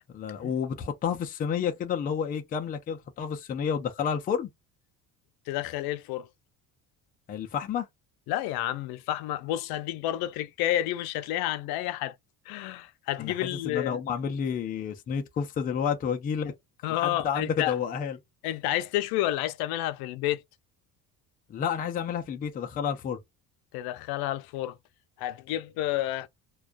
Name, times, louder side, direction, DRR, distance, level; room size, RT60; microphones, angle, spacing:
voice 1, 0.1-4.5 7.3-7.9 13.2-16.5 16.9-18.2 21.5-23.2, left 7 dB, 25° left, 0.3 m, -30 dB
voice 2, 5.5-6.3 8.3-12.2 12.5-14.0 16.8-17.8 18.4-20.4 23.7-24.8 25.2-26.3, left 14 dB, 85° left, 0.5 m, -30 dB
2.2 x 2.2 x 2.4 m
cardioid pair, 160°, 36 cm